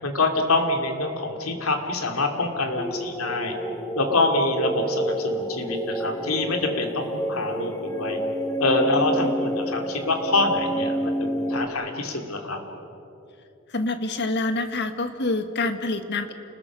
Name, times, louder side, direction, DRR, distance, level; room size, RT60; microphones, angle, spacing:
voice 1, 0.0-3.5 4.0-8.2 8.6-12.6, left 2 dB, 80° left, 4 dB, 2.9 m, -25 dB
sound 1, 2.8-11.7, equal, 15° left, 1.3 m, -29 dB
voice 2, 13.7-16.3, left 2 dB, 55° left, 8 dB, 1.5 m, -27 dB
29.0 x 20.5 x 6.1 m, 2.8 s
head